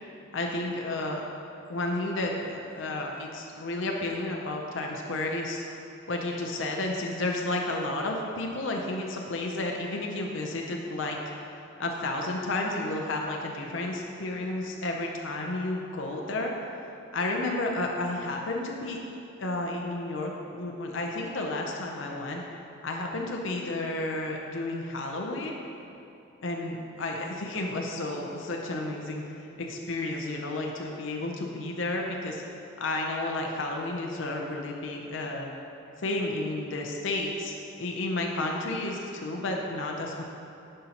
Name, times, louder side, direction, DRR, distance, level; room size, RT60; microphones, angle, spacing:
voice 1, 0.3-1.2 1.6-5.6 6.1-11.2 11.8-16.5 17.1-19.0 19.4-22.4 22.8-25.6 26.4-32.4 32.8-35.5 36.0-40.2, left 2 dB, 75° left, 0 dB, 0.6 m, -32 dB
10.0 x 5.4 x 2.9 m, 2.8 s
head